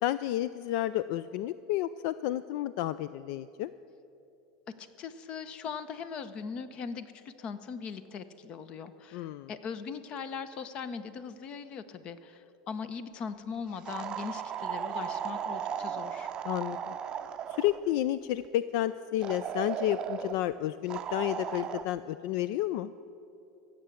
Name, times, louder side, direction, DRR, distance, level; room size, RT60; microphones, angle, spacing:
voice 1, 0.0-3.7 9.1-9.5 16.4-16.9 17.6-22.9, left 13 dB, 65° left, 15 dB, 0.3 m, -31 dB
voice 2, 4.8-16.3, left 6 dB, 40° left, 13 dB, 0.8 m, -40 dB
sound 1, 13.9-17.8 19.2-20.4 20.9-21.8, right 8 dB, 30° right, 0.6 m, -36 dB
16.0 x 7.7 x 8.4 m, 3.0 s
supercardioid pair, 135°, 3 cm